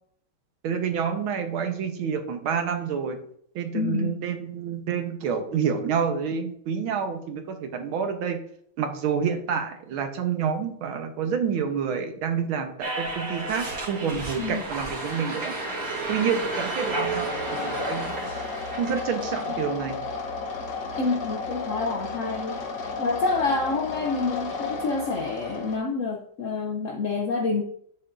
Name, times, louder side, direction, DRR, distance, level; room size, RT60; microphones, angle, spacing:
voice 1, 0.6-3.2 3.5-8.4 8.8-15.5 16.1-18.3 18.8-20.0, right 7 dB, 85° right, 6 dB, 1.7 m, -28 dB
voice 2, 3.7-4.2 14.4-14.6 21.0-22.6 23.0-27.6, left 3 dB, 90° left, 2 dB, 0.6 m, -27 dB
sound 1, 12.8-19.5, right 3 dB, 50° right, 2.1 m, -32 dB
sound 2, 16.8-25.8, left 4 dB, 60° left, 1.6 m, -33 dB
8.1 x 7.6 x 2.5 m, 0.66 s
omnidirectional pair, 2.2 m